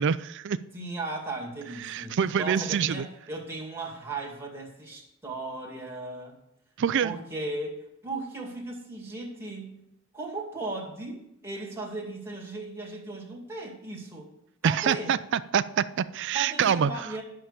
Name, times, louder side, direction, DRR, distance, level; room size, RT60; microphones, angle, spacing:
voice 1, 0.0-0.6 1.8-3.1 6.8-7.1 14.6-16.9, right 7 dB, 55° right, 13 dB, 0.4 m, -26 dB
voice 2, 0.7-6.4 7.0-9.8 10.1-14.3 14.6-15.1 16.3-17.2, right 2 dB, 10° right, -2 dB, 2.3 m, -36 dB
11.0 x 5.7 x 6.8 m, 0.81 s
head